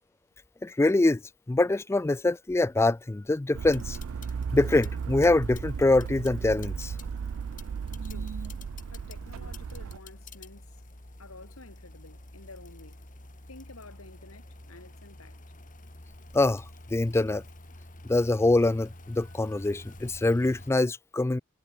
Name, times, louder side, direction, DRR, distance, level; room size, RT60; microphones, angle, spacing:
voice 1, 0.6-1.2 1.5-4.0 4.5-6.9 16.3-16.6 16.9-17.4 18.0-21.4, left 2 dB, 10° left, 0.3 m, -24 dB
sound 1, 3.5-10.0, right 6 dB, 65° right, 0.4 m, -35 dB
sound 2, 3.7-20.7, left 2 dB, 40° left, 3.8 m, -49 dB
voice 2, 8.0-8.4 8.9-10.8 11.2-13.1 13.5-15.4, left 2 dB, 85° left, 4.0 m, -50 dB
head